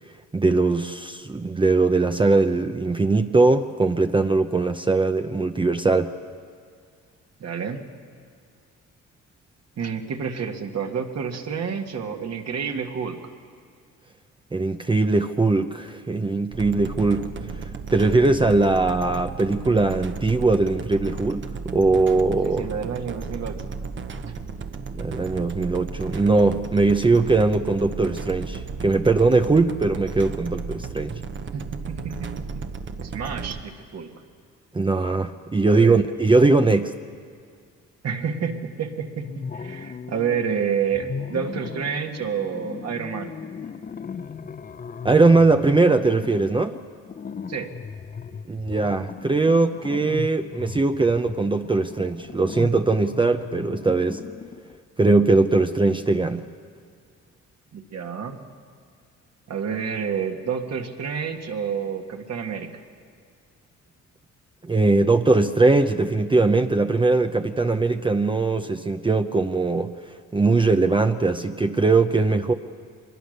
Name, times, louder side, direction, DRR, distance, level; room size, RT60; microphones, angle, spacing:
voice 1, 0.3-6.1 14.5-17.3 17.9-22.7 24.9-31.1 34.7-36.9 45.0-46.8 48.5-54.2 55.0-56.5 64.6-69.9 70.3-72.5, right 3 dB, 15° right, 7 dB, 0.7 m, -20 dB
voice 2, 7.4-7.8 9.8-13.2 22.4-23.7 24.3-24.4 31.5-32.5 33.0-34.1 35.7-36.0 38.0-43.3 47.5-47.7 57.7-58.4 59.5-62.8, right 7 dB, 60° right, 3 dB, 2.0 m, -29 dB
sound 1, 16.5-33.6, right 5 dB, 40° right, 1.1 m, -34 dB
sound 2, 39.2-40.5 40.9-54.8, left 6 dB, 30° left, 0.6 m, -37 dB
24.0 x 21.0 x 6.6 m, 2.2 s
cardioid pair, 90°, 30 cm